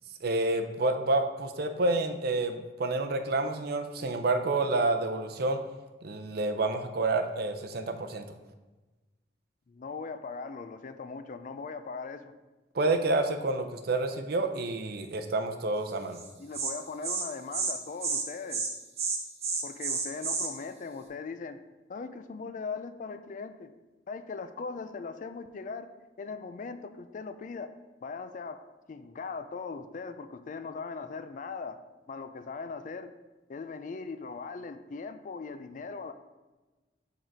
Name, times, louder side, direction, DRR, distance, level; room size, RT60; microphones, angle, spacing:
voice 1, 0.2-5.6 6.0-8.2 12.7-16.2, right 2 dB, 60° right, 7 dB, 0.6 m, -29 dB
voice 2, 9.7-12.3 16.4-18.6 19.6-21.6 21.9-23.7 24.1-25.9 26.2-27.7 28.0-28.6 28.9-31.8 32.1-33.1 33.5-36.1, left 4 dB, 45° left, 10 dB, 0.4 m, -39 dB
Insect, 16.2-16.3 16.5-16.7 17.0-17.2 17.5-17.7 18.0-18.2 18.5-18.7 19.0-20.5, right 5 dB, 35° right, 0.9 m, -30 dB
6.4 x 4.0 x 4.5 m, 1.2 s
head